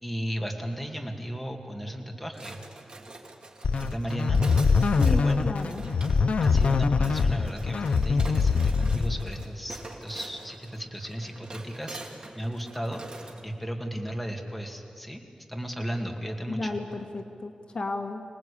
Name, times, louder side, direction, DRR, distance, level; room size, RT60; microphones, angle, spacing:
voice 1, 0.0-2.6 3.8-4.4 5.0-5.6 6.4-12.0 12.3-15.2 15.5-16.8, equal, ahead, 1 dB, 2.4 m, -35 dB
sound 1, 2.3-13.4, right 2 dB, 50° right, 2.9 m, -45 dB
sound 2, 3.6-9.5, left 4 dB, 90° left, 0.6 m, -23 dB
voice 2, 4.9-5.8 16.5-18.2, left 3 dB, 50° left, 4 dB, 1.6 m, -33 dB
26.0 x 19.0 x 8.6 m, 2.4 s
wide cardioid pair, 115°, 2 cm